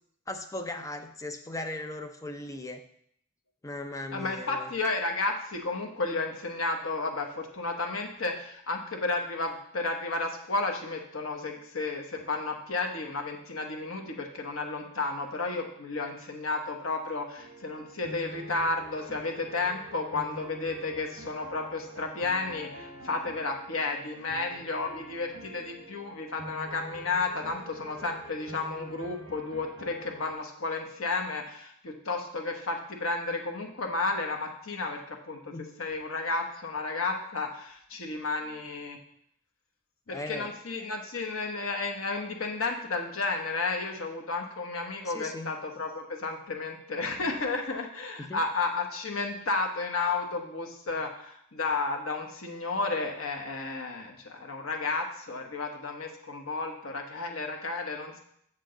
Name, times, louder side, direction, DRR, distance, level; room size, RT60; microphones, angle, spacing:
voice 1, 0.3-2.8 3.6-4.7 35.5-35.7 40.1-40.5 45.0-45.6 48.2-48.4, left 2 dB, 15° left, 6 dB, 0.6 m, -38 dB
voice 2, 4.1-39.0 40.1-58.2, left 3 dB, 75° left, 2 dB, 1.3 m, -32 dB
sound 1, 17.3-30.3, right 1 dB, 60° right, 1.4 m, -46 dB
7.7 x 7.3 x 3.9 m, 0.68 s
head